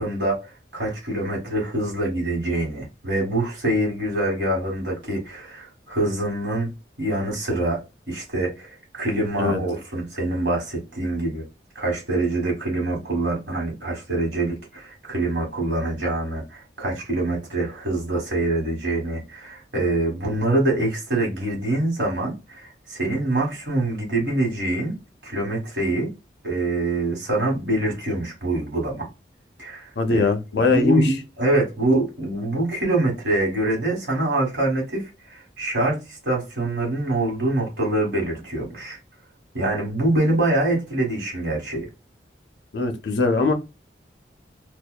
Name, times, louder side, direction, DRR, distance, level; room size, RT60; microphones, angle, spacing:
voice 1, 0.0-6.7 7.0-7.8 8.1-11.4 11.7-24.9 25.2-26.1 26.4-29.1 29.6-30.3 30.6-39.0 39.5-41.9, right 1 dB, 90° right, 1.3 m, -25 dB
voice 2, 30.0-31.1 42.7-43.5, left 3 dB, 70° left, 0.6 m, -21 dB
2.7 x 2.1 x 2.2 m
head